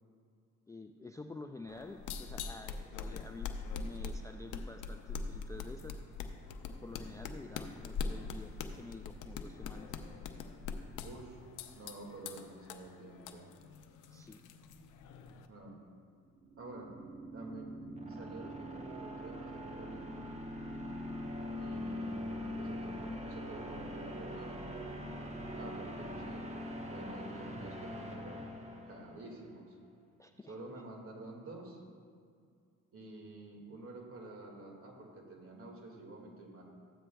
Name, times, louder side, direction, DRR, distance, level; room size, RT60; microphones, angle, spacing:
voice 1, 0.7-6.0 6.7-9.9 14.1-14.5 25.8-25.9 30.2-30.5, left 2 dB, 10° left, 5 dB, 0.3 m, -49 dB
sound 1, 1.7-15.5, left 5 dB, 85° left, 0.6 m, -43 dB
voice 2, 11.0-11.4 11.7-13.5 15.5-15.8 16.6-16.9 17.3-20.3 21.6-24.6 25.5-26.5 26.9-28.5 28.9-29.8 30.5-31.8 32.9-36.6, right 2 dB, 45° right, 0 dB, 1.9 m, -49 dB
sound 2, 16.3-29.3, equal, 20° right, 1.0 m, -42 dB
13.5 x 8.5 x 2.3 m, 2.2 s
cardioid pair, 90°, 30 cm